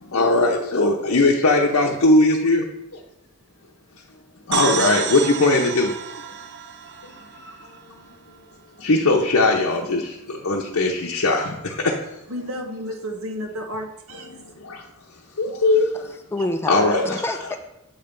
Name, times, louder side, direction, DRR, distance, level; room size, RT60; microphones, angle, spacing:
voice 1, 0.1-2.6 2.9-3.0 4.5-5.9 7.1-7.5 8.8-12.0 14.3-14.8 15.4-15.9 16.7-17.2, left 2 dB, 65° left, -2 dB, 0.7 m, -20 dB
sound 1, 4.5-8.1, right 8 dB, 50° right, 0.5 m, -29 dB
voice 2, 12.3-14.3, equal, 70° right, 3 dB, 1.1 m, -32 dB
voice 3, 15.9-17.6, left 2 dB, 10° left, 7 dB, 0.4 m, -28 dB
7.7 x 3.3 x 5.2 m, 0.85 s
head